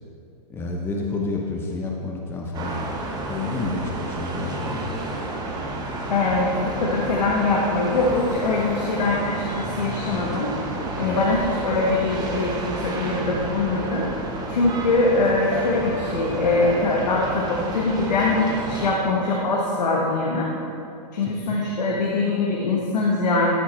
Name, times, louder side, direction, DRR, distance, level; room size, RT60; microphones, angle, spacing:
voice 1, 0.5-2.8 3.3-4.8 11.0-11.2 21.2-21.6, left 3 dB, 10° left, -1 dB, 0.7 m, -29 dB
sound 1, 2.5-18.9, right 2 dB, 20° right, 1.1 m, -31 dB
voice 2, 6.1-10.6 11.0-14.1 14.5-20.5 21.1-23.6, left 2 dB, 85° left, -2 dB, 1.2 m, -23 dB
13.0 x 4.6 x 4.3 m, 2.7 s
hypercardioid pair, 135°, 21 cm